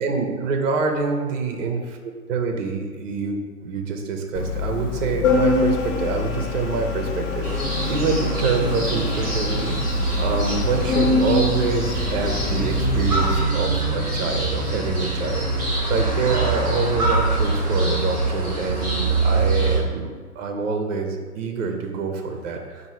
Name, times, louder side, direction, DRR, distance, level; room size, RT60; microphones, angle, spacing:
voice 1, 0.0-2.0 2.3-9.8 10.2-20.1 20.4-22.9, right 4 dB, 55° right, 4 dB, 0.7 m, -26 dB
Organ, 4.3-13.4, left 5 dB, 55° left, 0.8 m, -25 dB
sound 1, 7.4-19.8, right 3 dB, 10° right, 0.9 m, -24 dB
4.7 x 2.7 x 4.2 m, 1.5 s
hypercardioid pair, 140°, 46 cm